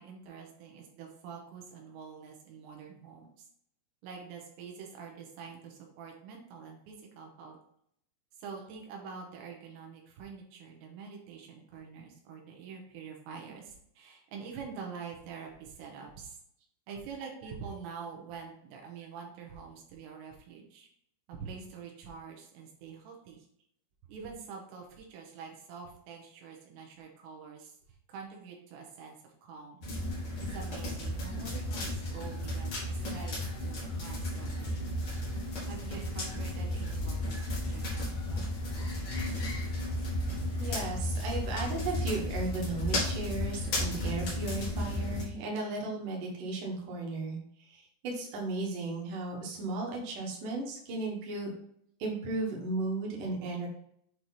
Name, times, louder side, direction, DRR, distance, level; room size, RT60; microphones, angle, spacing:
voice 1, 0.0-3.5 4.0-7.6 8.4-16.4 16.9-20.9 21.3-23.5 24.0-27.8 28.1-29.9 30.4-34.9 35.7-38.6, right 6 dB, 85° right, 1 dB, 3.5 m, -46 dB
sound 1, 29.8-45.3, left 1 dB, 90° left, 1.1 m, -34 dB
sound 2, 36.9-44.1, left 4 dB, 50° left, 1.1 m, -42 dB
voice 2, 40.6-47.4 47.7-51.5 52.0-53.7, right 3 dB, 60° right, -1 dB, 2.5 m, -35 dB
8.5 x 3.2 x 4.1 m, 0.68 s
omnidirectional pair, 5.0 m